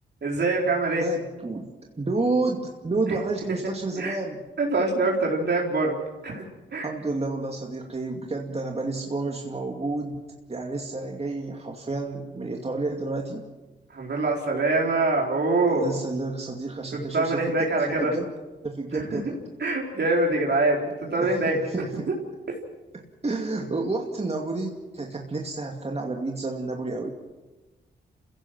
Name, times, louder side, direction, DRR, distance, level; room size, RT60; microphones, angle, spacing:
voice 1, 0.2-1.0 4.0-4.2 4.6-6.0 6.2-6.4 6.7-6.9 13.9-15.9 16.9-18.1 18.9-19.0 19.6-20.8 21.1-21.6 22.1-22.2, right 2 dB, 55° right, -1 dB, 4.2 m, -24 dB
voice 2, 1.0-1.7 2.0-4.4 6.8-10.1 10.5-13.4 15.7-18.3 18.6-19.4 21.1-22.1 22.9-27.1, right 3 dB, 30° right, 1 dB, 2.5 m, -30 dB
28.0 x 16.5 x 6.2 m, 1.2 s
cardioid pair, 60°, 21 cm